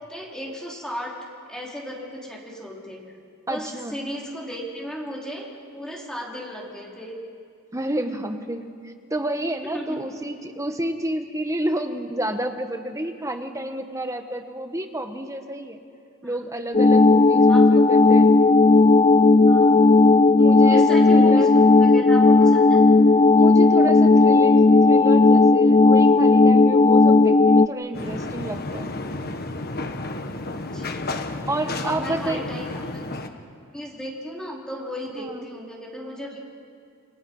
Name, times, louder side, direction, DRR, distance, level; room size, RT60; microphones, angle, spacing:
voice 1, 0.0-3.0 3.5-5.4 5.7-7.2 9.7-10.0 16.2-16.4 17.5-17.8 19.5-19.8 20.7-22.8 30.7-31.3 31.8-32.8 33.7-36.4, equal, 5° left, -3 dB, 4.3 m, -35 dB
voice 2, 3.5-3.9 7.7-15.8 16.2-18.3 20.4-21.5 23.3-28.9 31.5-32.4 35.1-35.4, right 1 dB, 15° right, 5 dB, 1.6 m, -30 dB
sound 1, 16.7-27.7, left 3 dB, 25° left, 0.5 m, -14 dB
sound 2, 27.9-33.3, left 2 dB, 45° left, 1.5 m, -32 dB
29.0 x 27.0 x 5.7 m, 2.3 s
head